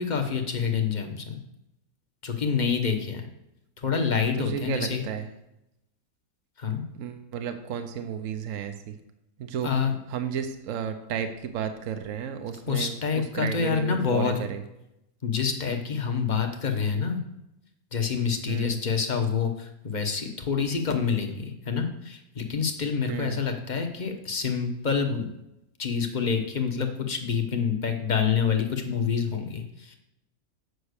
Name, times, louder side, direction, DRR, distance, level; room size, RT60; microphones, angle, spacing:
voice 1, 0.0-1.4 2.2-3.3 3.8-5.0 6.6-6.8 9.6-9.9 12.7-14.3 15.2-17.2 17.9-25.3 25.8-30.0, left 6 dB, 35° left, 5 dB, 1.1 m, -27 dB
voice 2, 4.4-5.3 6.9-8.9 9.4-9.7 10.1-14.6 18.5-18.8 23.1-23.4, right 8 dB, 65° right, 8 dB, 1.1 m, -33 dB
8.1 x 5.8 x 6.5 m, 0.86 s
omnidirectional pair, 1.6 m